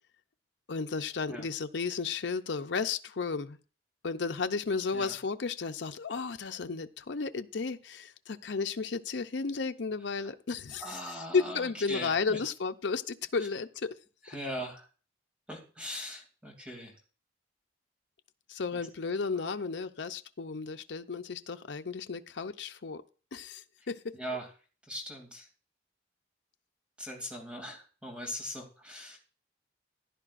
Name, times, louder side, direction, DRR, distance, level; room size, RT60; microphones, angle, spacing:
voice 1, 0.7-3.6 4.0-13.9 18.5-23.0 23.3-24.2, left 4 dB, 75° left, 8 dB, 0.6 m, -33 dB
voice 2, 10.8-12.4 14.2-14.9 15.5-16.9 18.7-18.8 24.1-24.5 24.9-25.5 27.0-29.2, equal, 5° right, 0 dB, 2.7 m, -40 dB
15.5 x 10.5 x 2.5 m, 0.37 s
head